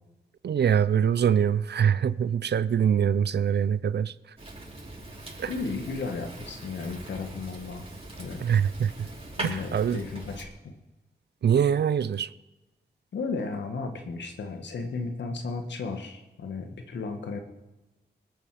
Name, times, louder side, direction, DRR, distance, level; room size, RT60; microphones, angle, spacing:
voice 1, 0.4-4.1 5.4-5.5 8.4-9.1 9.4-10.0 11.4-12.3, right 8 dB, 70° right, 0.6 m, -24 dB
Fire, 4.4-10.5, right 2 dB, 35° right, 5.0 m, -41 dB
voice 2, 5.5-7.9 8.2-8.4 9.4-10.7 13.1-17.4, left 4 dB, 85° left, 1.6 m, -34 dB
20.5 x 9.0 x 5.0 m
cardioid pair, 45°, 18 cm